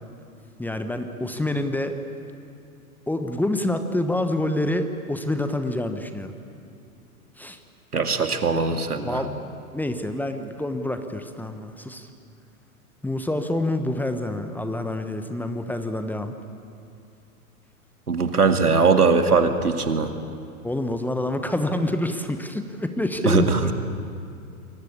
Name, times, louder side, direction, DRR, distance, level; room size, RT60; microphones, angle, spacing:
voice 1, 0.6-2.0 3.1-6.3 7.4-7.6 9.0-12.1 13.0-16.4 20.6-23.5, left 1 dB, 5° left, 7 dB, 1.1 m, -27 dB
voice 2, 7.9-9.2 18.1-20.2 23.2-23.7, right 4 dB, 80° right, 6 dB, 2.3 m, -20 dB
28.5 x 23.0 x 8.6 m, 2.5 s
figure-of-eight pair, 100°, 45 cm